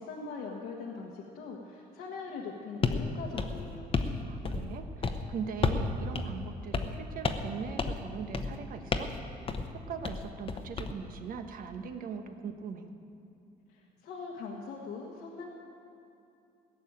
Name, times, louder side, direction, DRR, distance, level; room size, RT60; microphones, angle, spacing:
voice 1, 0.0-3.9 13.7-15.4, left 4 dB, 80° left, -2 dB, 1.4 m, -41 dB
sound 1, 2.8-3.0 3.4-4.2 4.4-4.8 5.0-5.2 5.6-5.9 6.1-6.3 6.7-7.0 7.2-7.5 7.8-8.0 8.3-8.6 8.9-9.2 9.5-9.7 10.0-10.9, left 4 dB, 35° left, 0.9 m, -31 dB
voice 2, 4.3-9.1 9.9-12.9, right 6 dB, 55° right, 6 dB, 1.2 m, -40 dB
17.0 x 6.8 x 8.9 m, 2.7 s
cardioid pair, 110°, 17 cm